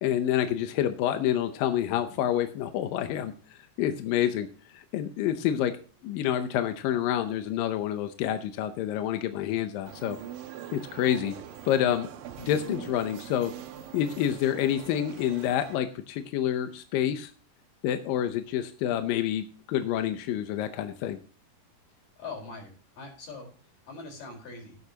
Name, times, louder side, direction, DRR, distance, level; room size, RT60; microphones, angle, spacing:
voice 1, 0.0-4.5 4.7-5.8 6.0-10.2 10.7-11.4 11.7-12.1 12.4-13.5 13.9-17.3 17.8-21.2, left 11 dB, 75° left, 8 dB, 2.2 m, -28 dB
sound 1, 9.8-15.8, right 10 dB, 70° right, 2.4 m, -42 dB
voice 2, 22.0-24.8, left 4 dB, 55° left, 2 dB, 5.8 m, -43 dB
13.5 x 11.0 x 2.8 m, 0.41 s
omnidirectional pair, 4.7 m